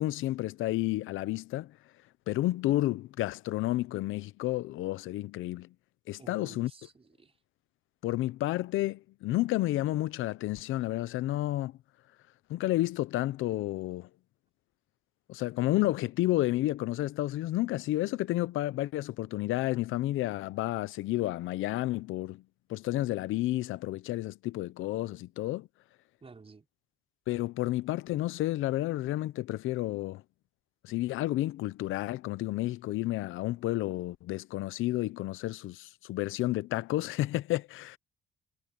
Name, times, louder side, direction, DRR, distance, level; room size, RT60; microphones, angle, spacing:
voice 1, 0.0-1.7 2.3-5.7 6.1-6.7 8.0-11.8 12.5-14.1 15.3-22.4 22.7-25.7 27.3-30.2 30.8-38.0, left 16 dB, 90° left, 0.7 m, -31 dB
voice 2, 6.2-7.4 26.2-26.7, right 4 dB, 30° right, 5.2 m, -52 dB
cardioid pair, 90°, 20 cm